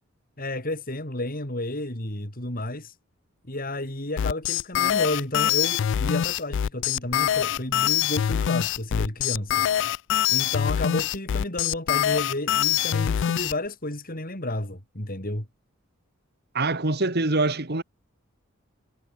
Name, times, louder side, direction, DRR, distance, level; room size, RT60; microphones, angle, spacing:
voice 1, 0.4-2.9 3.5-9.7 10.3-15.5, left 1 dB, 40° left, 5.2 m, -31 dB
sound 1, 4.2-13.5, left 10 dB, 60° left, 0.3 m, -24 dB
voice 2, 16.5-17.8, right 2 dB, 50° right, 2.1 m, -24 dB
head